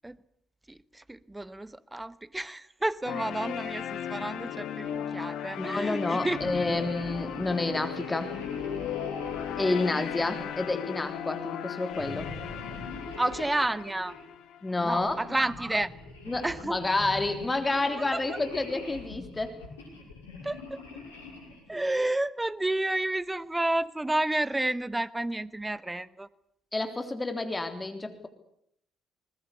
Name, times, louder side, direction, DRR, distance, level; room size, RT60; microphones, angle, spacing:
voice 1, 0.7-6.5 13.2-14.2 14.8-15.9 16.4-16.8 18.1-18.4 20.4-20.8 21.7-26.3, right 1 dB, 15° right, 17 dB, 1.2 m, -30 dB
sound 1, 3.0-15.1, left 9 dB, 60° left, 1.8 m, -37 dB
voice 2, 5.6-8.4 9.6-12.3 14.6-15.2 16.3-19.6 26.7-28.3, left 2 dB, 20° left, 7 dB, 3.4 m, -29 dB
sound 2, 6.2-11.1 11.9-14.2 14.9-21.7, left 3 dB, 85° left, 6.1 m, -42 dB
22.0 x 20.0 x 8.4 m, 0.71 s
hypercardioid pair, 50°, 0 cm